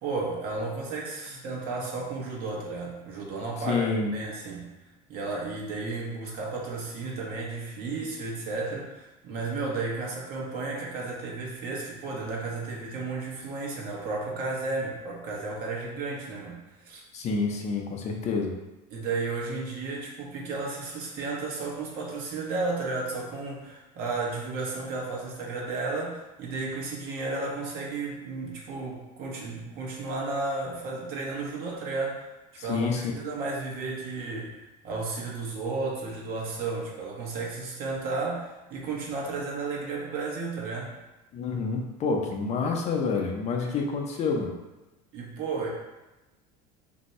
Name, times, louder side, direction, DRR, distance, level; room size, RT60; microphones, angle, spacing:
voice 1, 0.0-3.9 4.1-4.7 5.1-17.0 18.9-32.3 32.5-32.9 33.1-40.9 45.1-45.7, right 3 dB, 60° right, -3 dB, 1.0 m, -33 dB
voice 2, 3.6-4.1 17.1-18.5 32.6-33.1 41.3-44.5, left 4 dB, 40° left, 1 dB, 0.5 m, -28 dB
2.6 x 2.2 x 4.0 m, 1.1 s
supercardioid pair, 115°, 18 cm